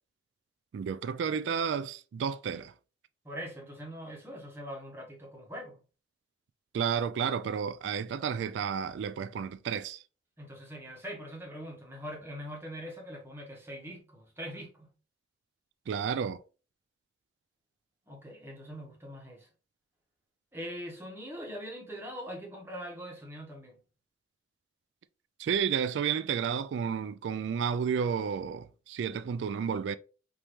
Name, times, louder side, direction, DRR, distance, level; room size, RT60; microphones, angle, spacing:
voice 1, 0.7-2.7 6.7-10.0 15.9-16.4 25.4-30.0, right 7 dB, 80° right, 0.3 m, -31 dB
voice 2, 3.2-5.8 10.4-14.9 18.1-19.5 20.5-23.8, equal, 15° right, 1.3 m, -42 dB
5.2 x 2.9 x 3.1 m
head